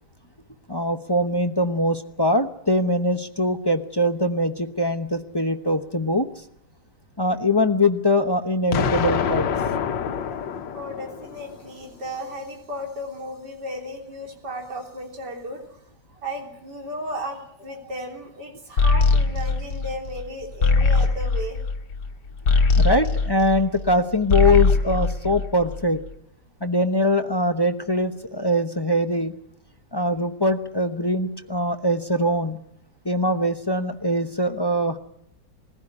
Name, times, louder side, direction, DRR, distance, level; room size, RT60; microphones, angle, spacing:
voice 1, 0.7-6.3 7.2-9.5 22.8-26.0 26.6-29.3 29.9-32.6 33.0-35.0, left 1 dB, 20° left, 7 dB, 0.7 m, -22 dB
Explosion, 8.7-11.7, left 7 dB, 80° left, 1.8 m, -26 dB
voice 2, 10.7-15.6 16.2-21.6, equal, 65° right, 1 dB, 4.0 m, -34 dB
sound 1, 18.8-23.9 24.2-26.0, left 4 dB, 65° left, 2.5 m, -21 dB
21.0 x 15.5 x 9.9 m, 0.76 s
omnidirectional pair, 2.0 m